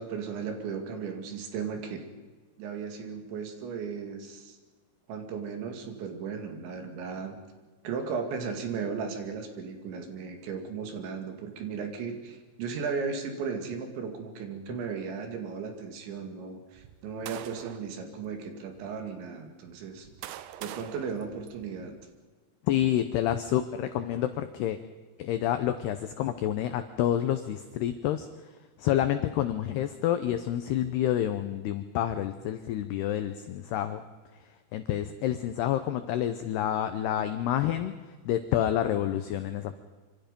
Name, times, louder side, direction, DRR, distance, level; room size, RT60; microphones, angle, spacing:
voice 1, 0.0-2.0 2.6-4.6 5.1-7.4 7.8-20.1 20.6-21.9, right 5 dB, 65° right, 5 dB, 4.3 m, -36 dB
sound 1, 16.8-17.9 18.7-18.8 19.7-22.0, right 12 dB, 85° right, 2.3 m, -44 dB
voice 2, 22.7-24.8 25.2-28.3 28.8-34.0 34.7-37.9 38.3-39.7, left 11 dB, 90° left, 9 dB, 2.3 m, -28 dB
26.0 x 25.5 x 5.3 m, 1.4 s
omnidirectional pair, 5.8 m